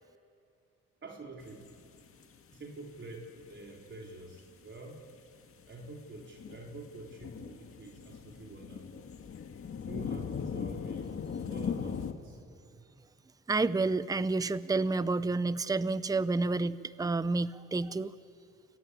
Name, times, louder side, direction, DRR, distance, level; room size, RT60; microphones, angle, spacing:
voice 1, 1.0-1.8 2.5-5.0 5.7-9.0 9.8-11.1 11.5-12.4, right 2 dB, 40° right, 0 dB, 4.0 m, -47 dB
sound 1, 1.4-2.6 3.0-3.1 3.4-3.7 4.3-4.5 4.9-5.0 5.3-12.1, left 6 dB, 45° left, 1.9 m, -39 dB
voice 2, 13.5-18.1, right 3 dB, 10° right, 16 dB, 0.7 m, -29 dB
28.5 x 21.5 x 9.7 m, 2.4 s
cardioid pair, 90°, 30 cm